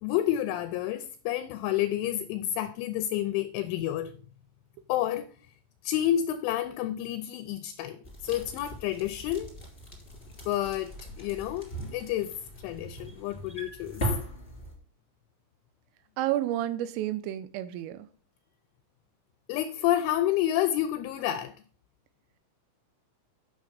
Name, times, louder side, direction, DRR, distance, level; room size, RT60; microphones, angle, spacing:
voice 1, 0.0-4.1 4.9-5.3 5.8-9.5 10.5-12.3 12.6-14.1 19.5-21.5, left 12 dB, 80° left, 2.9 m, -29 dB
sound 1, 8.0-14.7, right 1 dB, 15° left, 2.2 m, -39 dB
voice 2, 16.2-18.1, right 13 dB, 80° right, 3.4 m, -30 dB
9.4 x 7.0 x 5.1 m
omnidirectional pair, 6.0 m